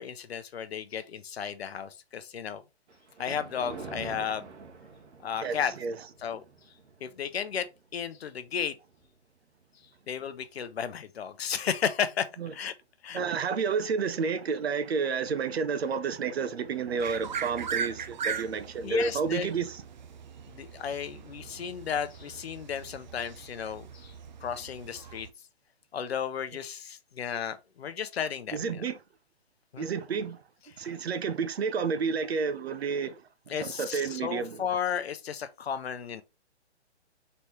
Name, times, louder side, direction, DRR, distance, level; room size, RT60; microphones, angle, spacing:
voice 1, 0.0-2.6 3.2-4.5 5.2-5.7 6.2-6.4 7.0-8.8 10.1-12.7 13.0-13.2 18.8-19.5 20.5-24.1 24.4-25.3 25.9-28.6 29.7-29.9 33.5-36.2, left 7 dB, 65° left, 0.7 m, -34 dB
Thunder, 2.9-11.4 11.9-12.2 12.9-13.0 13.3-13.4 15.6-15.8 16.1-16.2 16.4-22.4, right 4 dB, 85° right, 1.2 m, -50 dB
voice 2, 5.4-6.0 12.4-12.5 13.1-19.8 28.5-29.0 29.8-30.4 30.8-33.2 33.5-34.6, right 5 dB, 65° right, 0.8 m, -30 dB
sound 1, 17.0-25.3, right 6 dB, 45° right, 0.5 m, -39 dB
4.1 x 3.4 x 3.0 m
hypercardioid pair, 150°, 34 cm